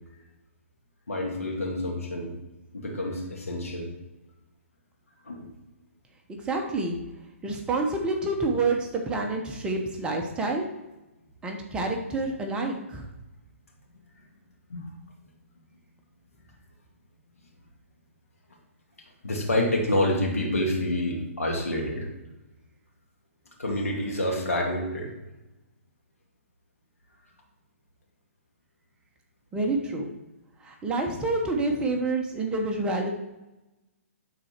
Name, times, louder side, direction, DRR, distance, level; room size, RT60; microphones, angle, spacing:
voice 1, 1.1-2.3 2.7-3.9 5.2-5.5 14.7-14.9 19.2-22.1 23.6-25.1, left 1 dB, 80° left, 0 dB, 2.3 m, -28 dB
voice 2, 6.4-7.0 7.4-10.7 11.4-13.1 29.5-30.1 30.6-33.1, right 3 dB, 10° right, 1 dB, 1.0 m, -28 dB
11.0 x 4.2 x 4.5 m, 1.0 s
figure-of-eight pair, 130°, 8 cm